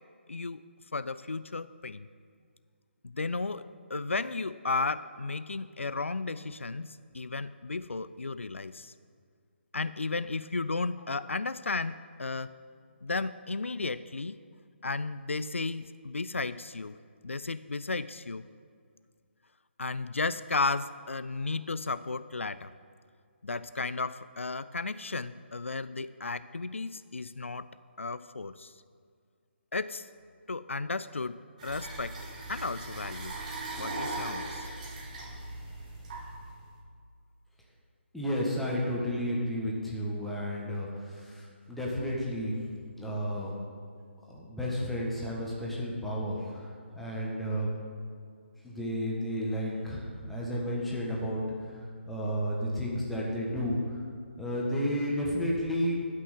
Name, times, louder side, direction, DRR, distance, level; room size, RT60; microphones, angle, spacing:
voice 1, 0.3-0.6 0.9-2.1 3.0-8.9 9.7-12.5 13.0-14.4 14.8-17.0 17.2-18.4 19.8-22.7 23.4-27.7 28.0-28.7 29.7-30.1 30.5-32.2 32.5-33.4 33.8-34.7, left 3 dB, 80° left, 15 dB, 0.4 m, -34 dB
sound 1, 31.6-36.7, right 2 dB, 35° right, 2.2 m, -39 dB
voice 2, 38.1-43.5 44.3-47.7 48.6-54.0 54.4-56.0, equal, ahead, -5 dB, 1.6 m, -32 dB
13.0 x 6.1 x 7.5 m, 2.1 s
figure-of-eight pair, 145°, 7 cm